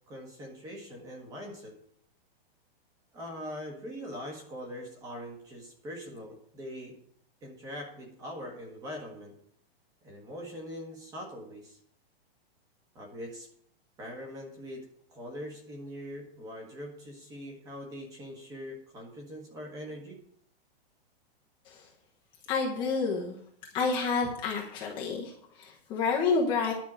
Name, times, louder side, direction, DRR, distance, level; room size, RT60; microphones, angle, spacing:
voice 1, 0.1-1.7 3.1-7.0 7.4-9.3 10.0-11.8 12.9-13.5 14.0-20.2, equal, 10° right, 1 dB, 1.6 m, -42 dB
voice 2, 22.5-23.3 23.7-26.7, left 4 dB, 15° left, -3 dB, 1.1 m, -29 dB
11.0 x 5.7 x 8.8 m, 0.65 s
supercardioid pair, 180°, 31 cm